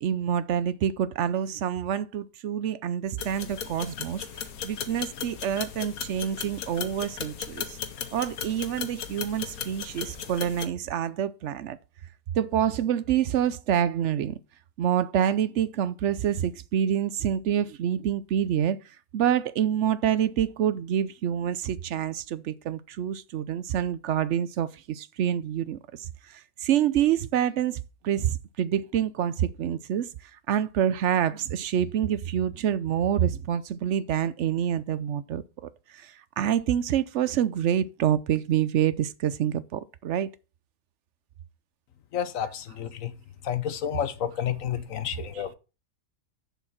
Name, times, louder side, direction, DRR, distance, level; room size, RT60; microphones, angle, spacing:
voice 1, 0.0-4.2 4.6-7.8 8.1-11.8 12.3-14.4 14.8-18.8 19.1-30.1 30.5-40.3 45.3-45.4, right 9 dB, 65° right, 0.8 m, -27 dB
sound 1, 3.2-10.7, left 8 dB, 85° left, 1.5 m, -37 dB
voice 2, 42.1-43.1 43.5-45.5, left 9 dB, 70° left, 1.2 m, -30 dB
7.1 x 7.0 x 5.8 m
omnidirectional pair, 1.5 m